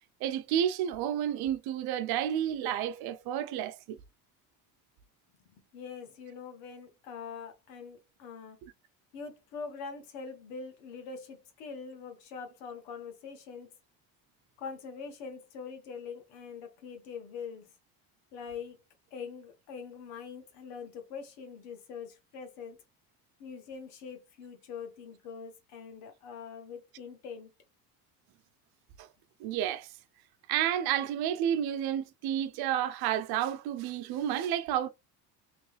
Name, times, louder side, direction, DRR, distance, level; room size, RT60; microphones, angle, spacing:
voice 1, 0.2-4.0 29.0-29.1 29.4-29.9 30.5-34.9, right 10 dB, 65° right, 0.7 m, -30 dB
voice 2, 5.7-8.6 9.1-13.7 14.6-17.7 18.3-18.8 19.1-22.8 23.4-27.5, left 5 dB, 90° left, 1.4 m, -43 dB
3.3 x 3.1 x 3.2 m
cardioid pair, 130°, 40 cm